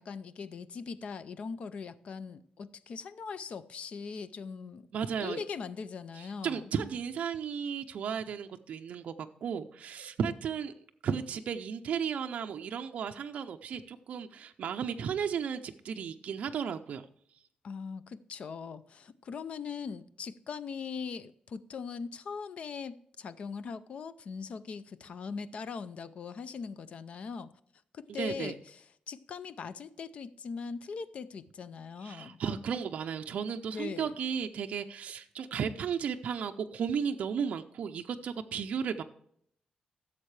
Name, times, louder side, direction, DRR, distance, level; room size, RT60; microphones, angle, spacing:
voice 1, 0.0-4.9 5.2-6.7 17.6-27.5 27.9-32.4 33.7-34.2, left 5 dB, 50° left, 0.5 m, -40 dB
voice 2, 4.9-5.4 6.2-10.7 11.0-17.1 28.1-28.5 32.0-39.0, right 7 dB, 60° right, 0.5 m, -34 dB
15.5 x 7.3 x 3.2 m
wide cardioid pair, 170°, 3 cm